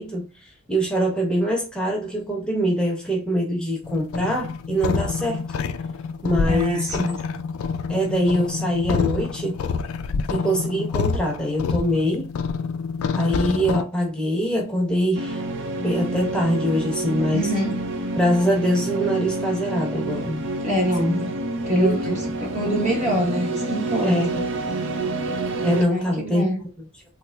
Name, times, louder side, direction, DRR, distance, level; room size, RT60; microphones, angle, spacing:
voice 1, 0.0-5.4 6.2-7.0 7.9-9.6 10.3-12.3 13.1-15.4 15.8-17.5 18.2-20.4 21.7-22.2 24.0-24.4 25.6-26.5, equal, 5° left, 0.9 m, -23 dB
sound 1, 3.8-13.8, left 5 dB, 70° left, 0.3 m, -27 dB
voice 2, 6.5-7.2 17.3-17.8 20.6-21.4 21.7-24.2 25.9-26.6, equal, 35° right, 1.0 m, -25 dB
sound 2, 15.1-25.8, right 2 dB, 55° right, 0.5 m, -28 dB
3.6 x 3.0 x 2.2 m
head